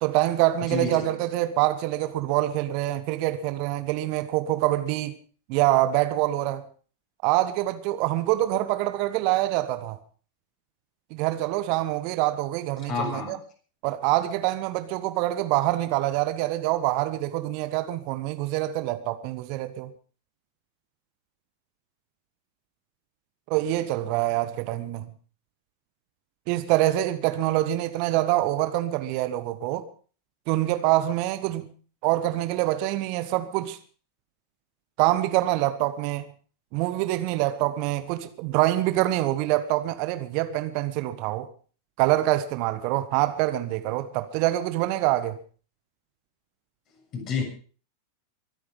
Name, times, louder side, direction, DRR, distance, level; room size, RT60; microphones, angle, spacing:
voice 1, 0.0-5.1 5.5-6.6 7.2-10.0 11.1-13.4 13.8-19.9 23.5-25.1 26.5-29.8 30.5-31.7 32.0-33.8 35.0-36.2 36.7-41.5 42.0-45.4, right 15 dB, 45° right, 1.3 m, -25 dB
voice 2, 0.6-1.0 12.8-13.4 47.1-47.4, left 5 dB, 35° left, 6.9 m, -29 dB
23.0 x 10.0 x 5.2 m
figure-of-eight pair, 90°, 0 cm